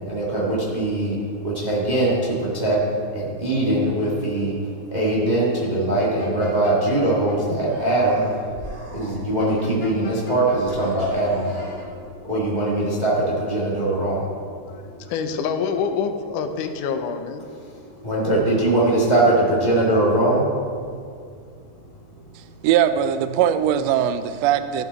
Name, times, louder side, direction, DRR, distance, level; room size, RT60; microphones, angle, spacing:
voice 1, 0.1-1.2 1.4-2.8 3.1-4.5 4.9-8.2 8.9-11.6 12.3-13.1 13.4-14.2 18.0-20.4, right 1 dB, 20° right, -6 dB, 1.2 m, -21 dB
sound 1, 6.0-7.4 9.4-10.8 11.1-11.9, left 3 dB, 50° left, 2.1 m, -41 dB
Human voice, 7.6-9.6 10.5-12.2, right 1 dB, 65° right, 3.0 m, -40 dB
voice 2, 15.1-17.4, left 6 dB, 85° left, 7 dB, 2.2 m, -26 dB
voice 3, 22.6-24.8, right 10 dB, 85° right, 11 dB, 1.5 m, -20 dB
14.5 x 6.0 x 4.0 m, 2.2 s
omnidirectional pair, 3.5 m